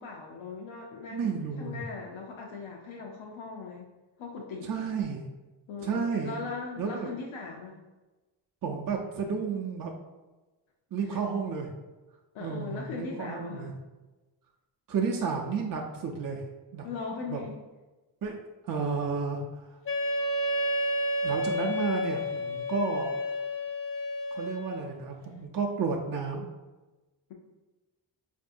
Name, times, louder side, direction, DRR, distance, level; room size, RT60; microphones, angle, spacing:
voice 1, 0.0-3.9 4.2-4.7 5.7-7.8 11.0-11.2 12.3-13.7 16.8-17.6, left 4 dB, 85° left, 0 dB, 0.6 m, -39 dB
voice 2, 1.1-1.8 4.6-5.3 5.8-6.4 6.8-7.1 8.6-9.9 10.9-11.7 12.4-13.7 14.9-16.4 16.7-16.9 17.3-17.4 18.2-18.4 18.6-19.7 21.2-23.1 24.3-26.4, right 5 dB, 45° right, 0 dB, 0.6 m, -32 dB
Wind instrument woodwind instrument, 19.9-24.9, left 1 dB, 30° left, 0.5 m, -30 dB
4.5 x 2.6 x 2.6 m, 1.1 s
cardioid pair, 50°, 46 cm